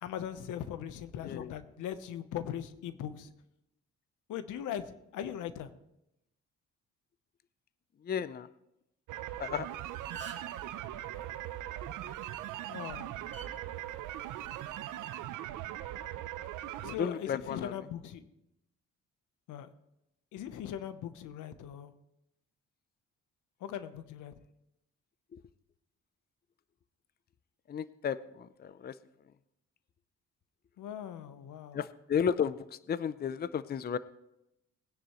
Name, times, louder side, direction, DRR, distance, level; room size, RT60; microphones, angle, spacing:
voice 1, 0.0-3.3 4.3-5.7 12.7-13.1 16.8-18.3 19.5-19.7 20.3-21.9 23.6-24.3 30.8-31.8, left 9 dB, 85° left, 12 dB, 0.9 m, -40 dB
voice 2, 1.2-1.5 8.0-8.5 9.4-9.7 17.0-17.7 25.3-25.4 27.7-28.9 31.7-34.0, left 7 dB, 30° left, 16 dB, 0.5 m, -33 dB
sound 1, 9.1-17.0, right 13 dB, 90° right, 0.6 m, -40 dB
sound 2, 9.7-9.8 9.9-10.6 12.2-12.5 13.3-13.5 14.5-14.8, right 5 dB, 40° right, 2.2 m, -45 dB
19.5 x 10.0 x 3.1 m, 0.85 s
cardioid pair, 90°, 30 cm